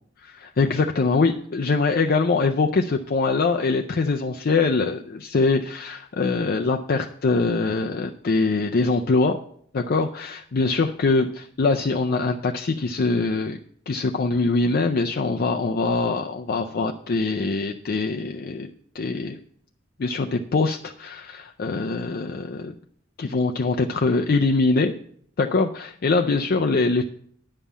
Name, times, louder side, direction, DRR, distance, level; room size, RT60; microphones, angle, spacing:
voice 1, 0.2-9.4 9.7-13.6 13.9-18.7 18.9-19.4 20.0-22.7 23.2-24.9 25.4-27.0, left 3 dB, 50° left, 3 dB, 0.5 m, -23 dB
9.9 x 5.5 x 7.1 m, 0.62 s
head